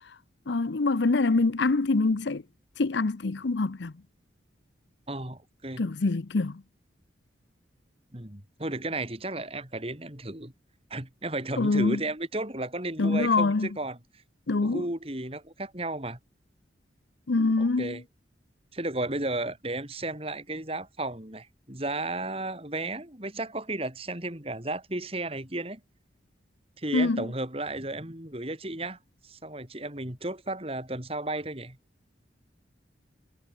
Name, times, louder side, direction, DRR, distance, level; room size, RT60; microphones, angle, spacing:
voice 1, 0.5-2.4 2.8-3.9 5.8-6.6 11.6-12.0 13.0-13.7 14.5-14.9 17.3-18.0 26.9-27.2, left 3 dB, 70° left, 0.7 m, -25 dB
voice 2, 5.1-5.8 8.1-10.5 10.9-14.0 14.6-16.2 17.6-18.0 18.7-25.8 26.8-29.0 29.2-31.8, right 2 dB, 30° right, 3.2 m, -34 dB
head